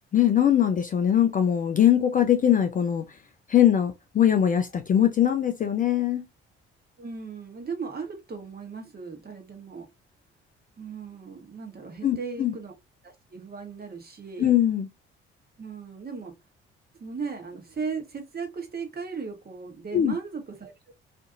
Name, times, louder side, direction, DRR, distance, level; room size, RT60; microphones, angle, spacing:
voice 1, 0.1-3.0 3.5-6.2 12.0-12.5 14.4-14.9 19.9-20.1, left 10 dB, 30° left, 0.4 m, -21 dB
voice 2, 7.0-9.9 10.8-12.7 13.3-14.5 15.6-16.3 17.0-20.9, right 5 dB, 30° right, 1.1 m, -37 dB
2.6 x 2.5 x 2.4 m
hypercardioid pair, 50°, 30 cm